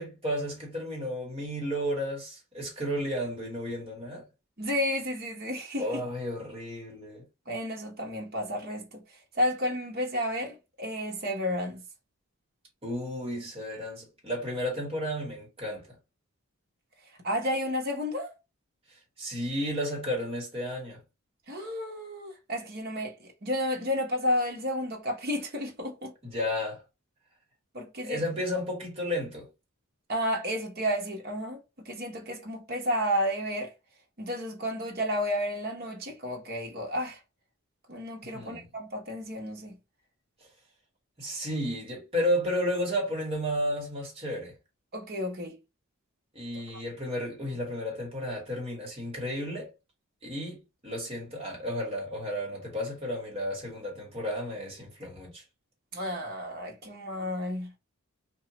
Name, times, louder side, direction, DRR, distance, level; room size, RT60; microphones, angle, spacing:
voice 1, 0.0-4.2 5.8-7.2 12.8-16.0 19.2-21.0 26.2-26.8 28.0-29.4 38.3-38.7 41.2-44.5 46.3-49.7 50.2-55.4, equal, 25° right, 1.3 m, -32 dB
voice 2, 4.6-6.0 7.5-9.0 9.3-11.8 17.2-18.3 21.5-26.1 27.7-28.2 30.1-33.7 34.2-37.2 37.9-39.7 44.9-45.6 46.7-46.8 55.9-57.7, equal, 45° right, 0.8 m, -31 dB
2.9 x 2.3 x 2.9 m
head